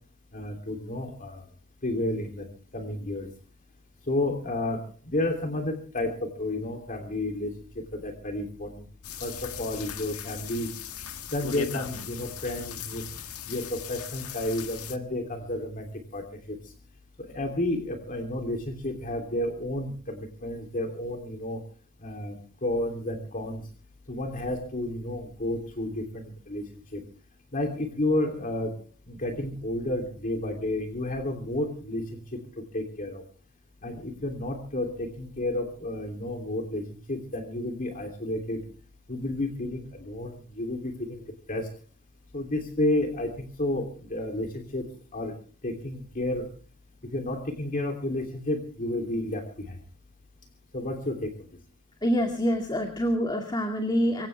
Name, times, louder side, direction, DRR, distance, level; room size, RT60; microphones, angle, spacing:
voice 1, 0.3-1.4 1.8-3.3 4.1-8.8 9.2-10.7 11.3-13.0 13.5-16.6 17.2-21.6 22.0-23.6 24.1-26.6 26.9-27.0 27.5-28.8 29.1-32.0 32.6-33.2 33.8-38.6 39.1-41.7 42.3-44.9 45.1-45.3 45.6-46.5 47.1-49.8 50.7-51.3, left 1 dB, 40° left, 4 dB, 3.0 m, -31 dB
sound 1, 9.0-15.0, left 8 dB, 90° left, 1.7 m, -38 dB
voice 2, 52.0-54.3, equal, 20° left, 4 dB, 2.2 m, -26 dB
24.5 x 16.5 x 3.4 m, 0.40 s
head